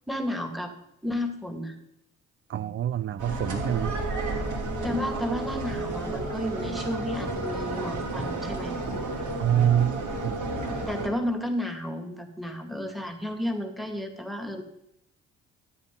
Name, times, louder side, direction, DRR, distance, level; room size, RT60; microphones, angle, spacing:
voice 1, 0.1-0.7 1.0-1.8 4.8-8.7 10.9-14.6, left 1 dB, ahead, 6 dB, 2.4 m, -32 dB
voice 2, 2.5-4.0 9.4-10.5, right 10 dB, 35° right, 14 dB, 0.5 m, -26 dB
sound 1, 3.2-11.1, right 2 dB, 55° right, 3.5 m, -31 dB
13.0 x 8.6 x 5.5 m, 0.81 s
figure-of-eight pair, 45°, 36 cm